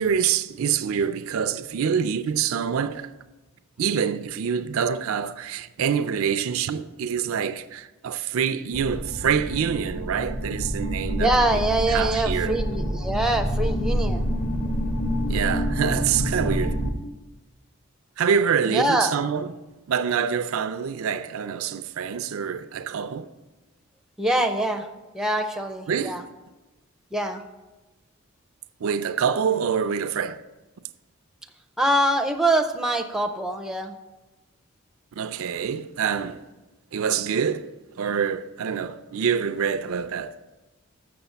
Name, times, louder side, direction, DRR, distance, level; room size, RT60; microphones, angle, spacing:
voice 1, 0.0-3.1 3.8-11.3 11.9-12.6 15.3-16.8 18.2-19.5 19.9-23.3 25.9-26.2 28.8-30.4 35.2-36.4 36.9-37.7 38.0-40.4, right 7 dB, 75° right, 0.4 m, -26 dB
sound 1, 8.7-16.9, equal, 40° left, 0.9 m, -27 dB
voice 2, 11.2-14.3 18.6-19.1 24.2-24.9 25.1-26.2 27.1-27.4 31.8-33.9, right 1 dB, 5° right, 0.5 m, -24 dB
6.8 x 6.7 x 6.9 m
head